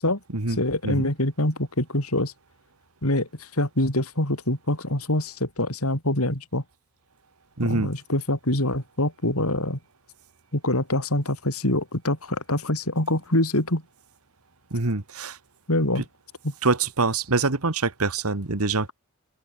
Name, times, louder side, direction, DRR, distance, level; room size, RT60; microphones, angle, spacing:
voice 1, 0.6-2.3 3.0-6.6 7.6-9.8 10.5-13.8 15.7-16.0, left 1 dB, 80° left, 6.2 m, -25 dB
voice 2, 7.6-7.9 14.7-15.4 16.0-16.1 16.6-18.9, right 3 dB, 80° right, 1.8 m, -25 dB
open air
head